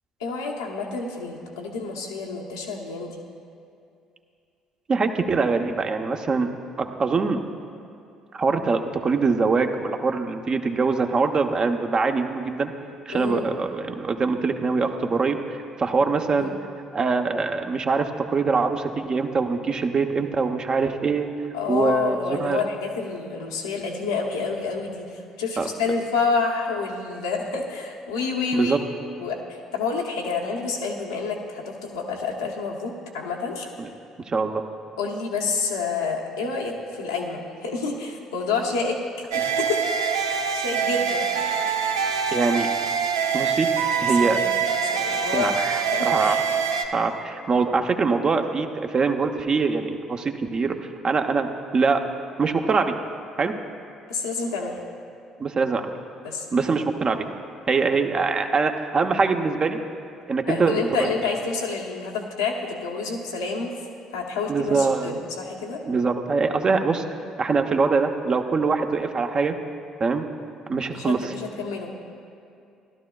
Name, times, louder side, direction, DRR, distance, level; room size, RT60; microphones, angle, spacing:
voice 1, 0.2-3.2 13.1-13.5 16.3-16.6 21.5-28.8 29.2-33.7 35.0-39.0 39.3-39.8 40.1-41.2 44.2-44.5 44.9-45.5 45.9-46.4 54.1-54.8 56.2-56.4 60.5-63.8 64.1-65.8 70.9-72.0, left 4 dB, 85° left, -2 dB, 1.1 m, -28 dB
voice 2, 4.9-6.5 6.8-7.4 8.3-12.7 13.1-16.5 16.9-21.3 21.7-22.6 25.6-25.7 28.5-28.8 33.8-33.9 34.3-34.6 42.3-42.7 43.3-43.7 44.0-44.4 45.3-46.4 46.9-50.8 51.0-52.0 52.4-52.9 53.4-53.5 55.4-55.9 56.5-57.3 57.7-59.8 60.3-61.1 64.5-65.1 65.9-67.0 67.4-69.5 70.0-70.3 70.7-71.3, right 4 dB, 40° right, 5 dB, 0.8 m, -23 dB
sound 1, 39.3-46.8, right 6 dB, 85° right, 0.5 m, -24 dB
15.5 x 12.0 x 2.4 m, 2.5 s
hypercardioid pair, 50°, 2 cm